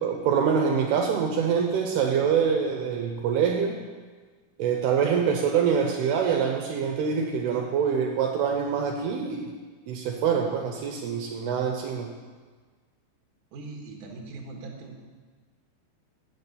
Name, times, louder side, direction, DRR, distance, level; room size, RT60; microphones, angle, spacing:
voice 1, 0.0-3.8 4.6-9.5 9.9-12.1, right 7 dB, 75° right, 1 dB, 2.6 m, -25 dB
voice 2, 13.5-15.0, right 3 dB, 60° right, 1 dB, 2.3 m, -40 dB
7.3 x 7.2 x 8.2 m, 1.4 s
omnidirectional pair, 4.9 m